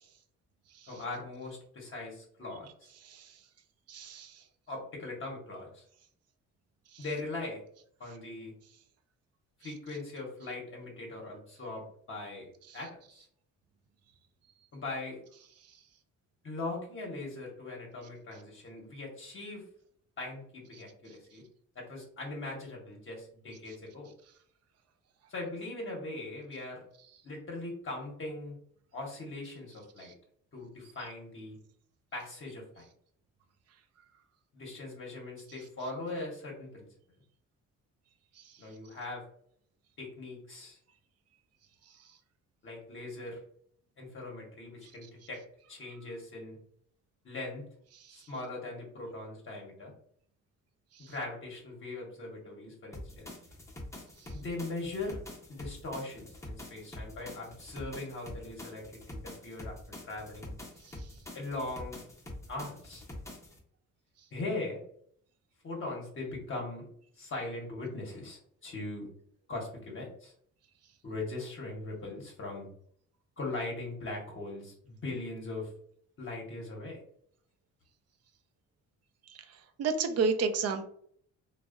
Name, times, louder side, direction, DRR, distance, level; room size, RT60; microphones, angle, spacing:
voice 1, 0.9-2.9 4.7-5.8 7.0-7.6 8.0-8.5 9.6-13.3 14.7-15.2 16.4-19.6 20.2-21.4 21.7-24.1 25.3-26.8 27.2-28.6 28.9-30.1 30.5-31.6 32.1-32.9 34.5-36.9 38.6-39.2 40.0-40.8 42.6-43.4 44.0-45.4 45.7-46.6 47.2-47.7 48.1-49.9 51.0-53.3 54.3-55.2 55.5-60.5 61.3-62.0 62.5-63.0 64.3-64.8 65.6-66.8 67.1-69.1 69.5-70.3 71.0-72.7 73.4-75.7 76.2-77.0, left 2 dB, 45° left, -1 dB, 0.8 m, -40 dB
voice 2, 3.9-4.3 79.8-80.9, right 5 dB, 55° right, 8 dB, 0.4 m, -29 dB
sound 1, 52.9-63.6, left 1 dB, 10° left, 0.6 m, -46 dB
2.6 x 2.0 x 2.3 m, 0.62 s
cardioid pair, 90°, 30 cm